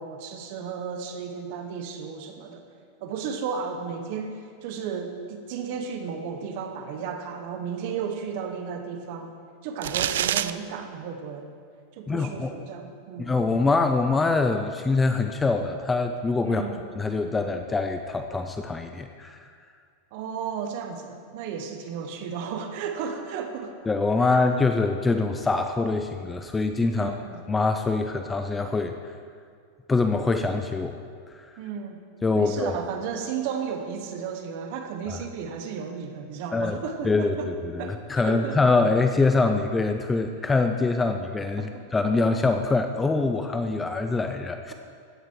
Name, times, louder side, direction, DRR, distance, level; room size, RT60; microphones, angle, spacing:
voice 1, 0.0-2.6 3.0-9.3 9.6-11.5 12.0-13.3 16.4-16.8 20.1-23.7 24.2-24.4 26.9-27.4 31.6-32.0 32.3-37.5 37.8-38.6 41.6-41.8, right 6 dB, 45° right, 5 dB, 1.2 m, -34 dB
sound 1, 9.8-10.5, right 11 dB, 80° right, 0.4 m, -25 dB
voice 2, 12.1-12.5 13.2-16.6 17.0-19.5 23.9-27.2 27.5-29.1 29.9-31.0 31.3-31.5 32.2-32.7 35.1-35.2 36.5-36.8 37.0-44.7, left 3 dB, 10° left, 6 dB, 0.4 m, -24 dB
16.0 x 8.1 x 4.7 m, 2.2 s
supercardioid pair, 175°, 0 cm